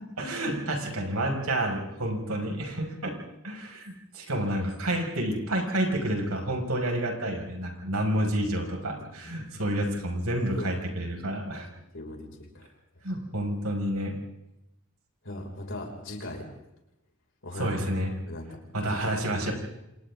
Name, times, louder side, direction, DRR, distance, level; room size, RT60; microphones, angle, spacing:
voice 1, 0.2-3.1 3.4-11.7 13.0-14.1 17.6-18.1 18.7-19.5, right 1 dB, 80° right, 1 dB, 5.5 m, -29 dB
voice 2, 11.9-12.7 15.2-16.4 17.4-17.7 18.2-18.5, left 1 dB, 60° left, 0 dB, 5.6 m, -38 dB
29.0 x 27.5 x 3.7 m, 0.89 s
head